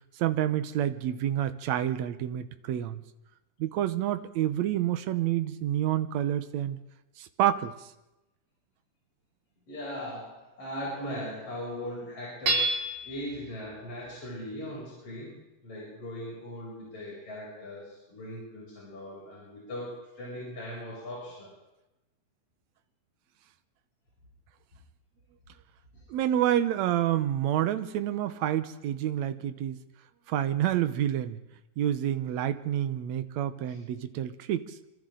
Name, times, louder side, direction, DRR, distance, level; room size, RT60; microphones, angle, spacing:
voice 1, 0.2-3.0 3.6-6.8 7.2-7.7 26.1-29.8 30.3-31.4 31.8-34.8, right 11 dB, 70° right, 11 dB, 2.0 m, -28 dB
voice 2, 9.7-15.4 15.6-19.9 20.1-21.5 25.9-26.0 33.7-33.8, equal, 45° left, -6 dB, 8.3 m, -39 dB
Hammer / Chink clink, 12.5-13.3, right 2 dB, 50° right, 6.2 m, -27 dB
26.5 x 25.5 x 3.9 m, 0.96 s
omnidirectional pair, 3.6 m